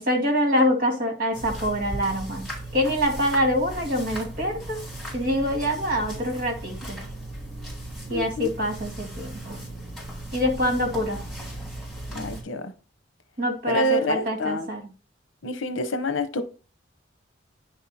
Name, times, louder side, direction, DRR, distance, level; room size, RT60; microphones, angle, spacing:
voice 1, 0.0-2.5 2.7-4.8 5.1-7.0 8.1-9.6 10.3-11.2 13.4-14.8, equal, 50° right, 2.2 m, -25 dB
sound 1, 1.3-12.4, right 1 dB, ahead, 4.0 m, -37 dB
voice 2, 8.1-8.5 12.1-12.7 13.7-14.7 15.4-16.4, equal, 90° left, 0.9 m, -27 dB
10.0 x 3.7 x 4.2 m
head